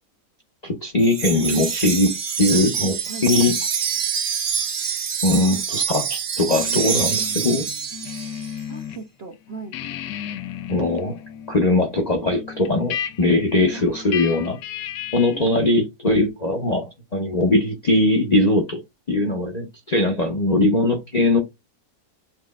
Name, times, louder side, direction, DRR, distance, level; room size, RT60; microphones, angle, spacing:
voice 1, 0.6-3.5 5.2-7.7 10.7-11.2 11.5-14.6 15.1-18.8 19.1-21.4, left 2 dB, 35° left, 0.7 m, -20 dB
Wind chime, 1.0-8.5, right 7 dB, 75° right, 0.4 m, -26 dB
sound 1, 6.5-9.0 9.3-15.5, left 9 dB, 85° left, 1.2 m, -34 dB
voice 2, 8.7-9.8 13.7-14.5 15.3-15.8, right 5 dB, 50° right, 0.8 m, -39 dB
7.3 x 3.1 x 2.4 m
omnidirectional pair, 1.8 m